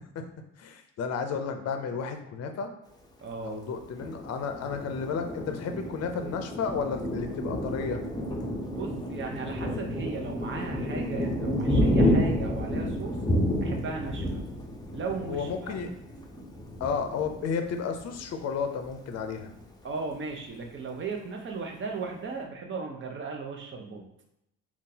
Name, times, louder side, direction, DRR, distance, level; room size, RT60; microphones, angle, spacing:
voice 1, 0.6-2.7 3.4-8.0 15.3-15.9 16.8-19.5, left 6 dB, 55° left, 6 dB, 0.5 m, -32 dB
voice 2, 3.2-3.7 8.6-13.2 13.6-14.4 14.9-15.9 19.8-24.1, right 4 dB, 40° right, 2 dB, 0.7 m, -36 dB
Thunder, 4.0-18.3 18.8-18.9 19.2-19.8, equal, 15° left, 0.6 m, -30 dB
3.7 x 2.4 x 2.8 m, 0.81 s
cardioid pair, 90°, 30 cm